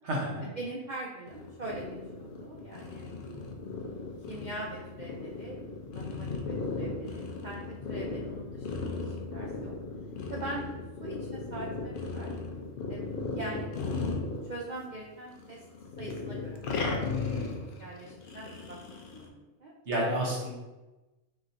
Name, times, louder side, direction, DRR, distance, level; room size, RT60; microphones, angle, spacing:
voice 1, 0.0-0.5 17.2-17.6 19.8-20.5, right 1 dB, 60° right, -3 dB, 1.3 m, -31 dB
voice 2, 0.6-3.6 4.3-5.6 5.9-8.9 9.3-9.7 10.3-10.7 11.0-12.3 12.9-13.1 13.3-13.7 14.4-15.6 16.0-18.8 19.1-19.7, right 2 dB, 90° right, -3 dB, 0.4 m, -42 dB
sound 1, 1.3-15.0 15.3-19.3, left 3 dB, 60° left, 0.6 m, -36 dB
4.0 x 3.7 x 2.6 m, 1.1 s
omnidirectional pair, 1.4 m